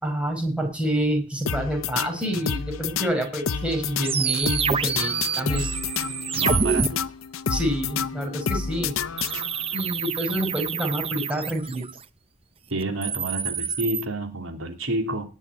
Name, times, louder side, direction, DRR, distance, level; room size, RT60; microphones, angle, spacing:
voice 1, 0.0-5.7 7.5-8.9 9.7-11.9, right 1 dB, 5° right, 2 dB, 4.9 m, -27 dB
sound 1, 1.5-9.8, left 6 dB, 80° left, 0.7 m, -29 dB
sound 2, 4.0-6.9 9.2-12.0 12.8-14.0, right 6 dB, 30° right, 0.7 m, -27 dB
voice 2, 6.3-7.0 12.7-15.3, right 2 dB, 85° right, 4 dB, 3.1 m, -29 dB
18.5 x 6.5 x 9.2 m, 0.35 s
head